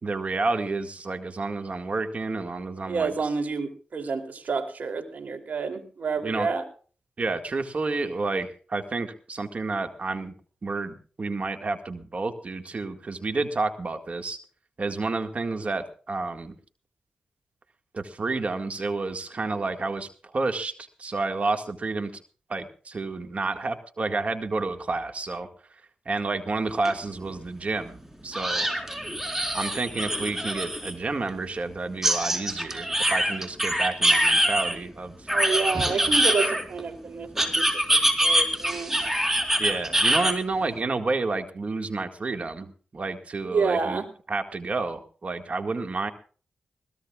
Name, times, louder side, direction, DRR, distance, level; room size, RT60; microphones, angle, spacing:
voice 1, 0.0-3.1 6.2-6.5 7.2-10.3 10.6-14.4 14.8-16.5 17.9-20.7 21.0-22.2 22.5-25.5 26.1-28.7 29.5-35.3 39.6-44.0 44.3-46.1, right 3 dB, 50° right, 6 dB, 2.0 m, -30 dB
voice 2, 2.9-6.6 35.3-39.0 43.4-44.0, right 5 dB, 65° right, 6 dB, 3.2 m, -29 dB
sound 1, 26.8-26.9 27.3-27.4 28.3-30.9 32.0-34.7 35.3-36.8 37.4-40.3, right 1 dB, 15° right, 4.3 m, -24 dB
21.5 x 17.5 x 2.4 m, 0.40 s
supercardioid pair, 45°, 3 cm